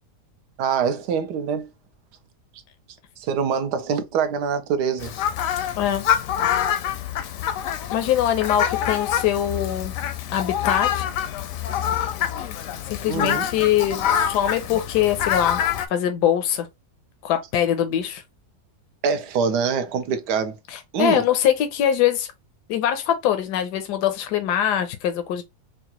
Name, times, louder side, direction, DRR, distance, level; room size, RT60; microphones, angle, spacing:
voice 1, 0.6-1.7 3.2-5.1 13.0-13.5 19.0-20.6 20.9-21.2, right 6 dB, 80° right, 1.3 m, -24 dB
Fowl, 5.0-15.9, left 9 dB, 70° left, 0.8 m, -26 dB
voice 2, 7.9-9.9 10.3-11.1 12.4-12.5 12.9-15.6 15.9-16.7 17.2-18.2 20.7-22.3 22.7-25.4, left 10 dB, 85° left, 1.2 m, -23 dB
4.8 x 2.4 x 2.9 m
omnidirectional pair, 1.8 m